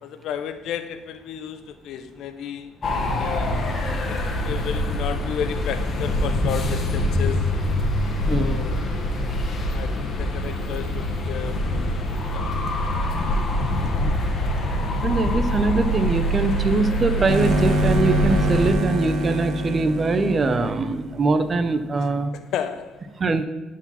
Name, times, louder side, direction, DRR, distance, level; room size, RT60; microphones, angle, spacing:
voice 1, 0.0-3.6 4.1-4.2 4.4-7.5 8.3-8.8 9.7-12.6 22.3-23.0, left 8 dB, 70° left, 10 dB, 0.7 m, -33 dB
sound 1, 2.8-18.7, left 1 dB, 45° left, 1.5 m, -24 dB
voice 2, 8.2-8.6 13.7-14.2 15.0-22.3 23.2-23.5, right 3 dB, 35° right, 11 dB, 0.7 m, -23 dB
sound 2, 17.3-21.6, equal, 65° right, 1.3 m, -25 dB
11.5 x 4.7 x 4.2 m, 1.2 s
supercardioid pair, 85°, 0 cm